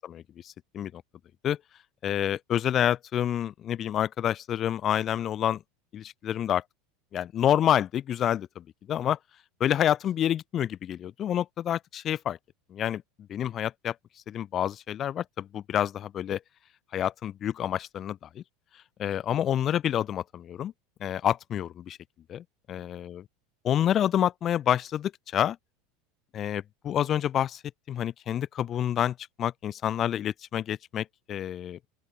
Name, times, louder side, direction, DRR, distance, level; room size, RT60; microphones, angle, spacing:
voice 1, 0.0-1.0 1.4-1.6 2.0-5.6 5.9-6.6 7.1-9.2 9.6-12.4 12.7-13.0 13.3-13.9 14.3-16.4 16.9-18.4 19.0-20.7 21.0-22.0 22.3-23.2 23.6-25.6 26.3-27.6 27.9-31.8, left 10 dB, 40° left, 4.6 m, -28 dB
open air
hypercardioid pair, 85°, 0 cm